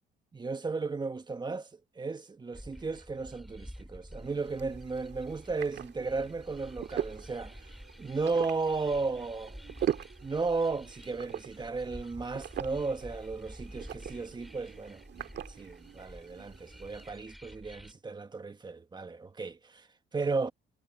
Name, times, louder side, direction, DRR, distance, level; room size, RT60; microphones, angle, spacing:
voice 1, 0.3-7.7 8.0-9.6 10.2-19.9 20.1-20.5, right 4 dB, 25° right, 1.5 m, -34 dB
sound 1, 2.5-17.9, equal, ahead, 2.7 m, -49 dB
sound 2, 4.2-17.1, right 11 dB, 65° right, 1.8 m, -42 dB
cardioid pair, 105°, 19 cm